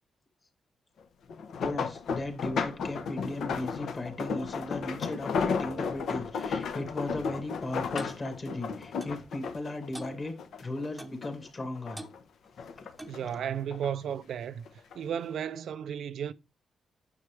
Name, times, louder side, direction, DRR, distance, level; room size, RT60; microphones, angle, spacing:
sound 1, 1.3-10.9 11.2-12.2 12.6-13.9 14.7-15.0 15.4-15.5, left 5 dB, 65° left, 1.2 m, -34 dB
voice 1, 1.6-12.0 12.8-12.9, left 2 dB, 25° left, 2.3 m, -37 dB
Clock, 8.0-8.2 9.0-9.2 9.9-10.2 11.0-11.2 12.0-12.2 13.0-13.2, right 1 dB, 5° right, 1.0 m, -43 dB
voice 2, 13.1-16.3, right 8 dB, 65° right, 0.5 m, -34 dB
9.5 x 6.8 x 3.3 m
wide cardioid pair, 160°, 0 cm